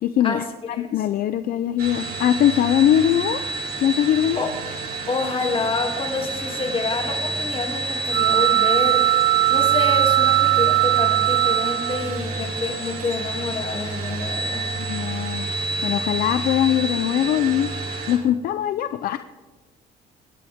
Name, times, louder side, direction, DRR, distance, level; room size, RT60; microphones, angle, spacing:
voice 1, 0.0-3.4 3.8-4.5 14.8-15.5 15.8-17.7 18.1-19.2, left 11 dB, 60° left, 11 dB, 0.6 m, -21 dB
sound 1, 1.8-18.2, right 2 dB, 65° right, 4.1 m, -28 dB
voice 2, 5.1-9.2 9.5-14.7, left 3 dB, 30° left, 2 dB, 2.7 m, -28 dB
sound 2, 8.1-12.2, right 20 dB, 90° right, 0.4 m, -19 dB
25.5 x 10.5 x 3.7 m, 1.3 s
cardioid pair, 110°, 17 cm